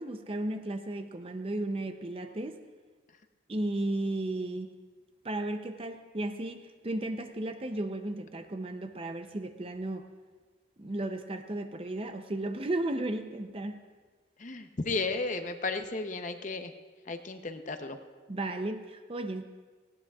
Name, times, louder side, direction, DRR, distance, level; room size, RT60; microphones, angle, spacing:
voice 1, 0.0-2.6 3.5-4.7 5.2-10.1 10.8-13.8 18.3-19.4, right 1 dB, 30° right, 8 dB, 0.5 m, -34 dB
voice 2, 14.4-16.7 17.1-18.0, left 3 dB, 40° left, 7 dB, 0.7 m, -34 dB
18.5 x 17.0 x 2.4 m, 1.4 s
head